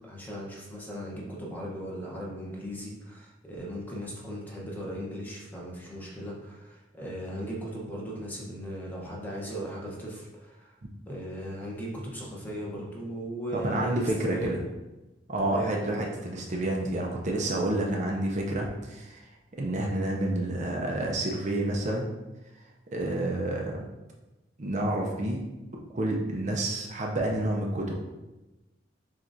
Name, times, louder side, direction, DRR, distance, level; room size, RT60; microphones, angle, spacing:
voice 1, 0.0-10.7 11.1-14.5 15.4-15.7, equal, 10° left, -4 dB, 0.9 m, -37 dB
voice 2, 13.5-14.6 15.3-19.3 19.6-22.1 22.9-23.8 24.6-25.4 25.9-27.9, right 1 dB, 40° right, -1 dB, 0.6 m, -29 dB
7.2 x 2.5 x 2.6 m, 1.1 s
head